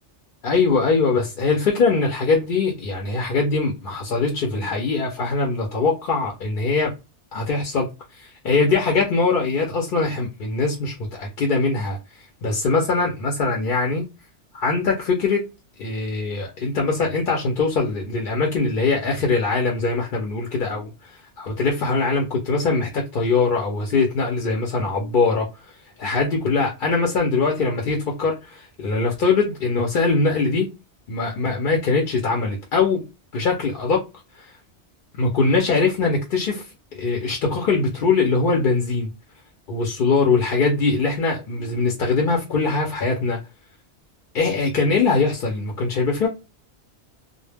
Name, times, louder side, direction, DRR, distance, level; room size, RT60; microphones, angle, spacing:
voice 1, 0.4-6.9 7.3-7.9 8.1-12.0 12.4-14.0 14.5-15.4 15.8-25.5 26.0-30.7 31.1-33.1 33.3-34.0 34.4-34.5 35.2-36.7 37.0-39.1 39.7-43.4 44.3-46.3, left 4 dB, 55° left, 0.7 m, -22 dB
2.1 x 2.1 x 3.2 m
omnidirectional pair, 1.2 m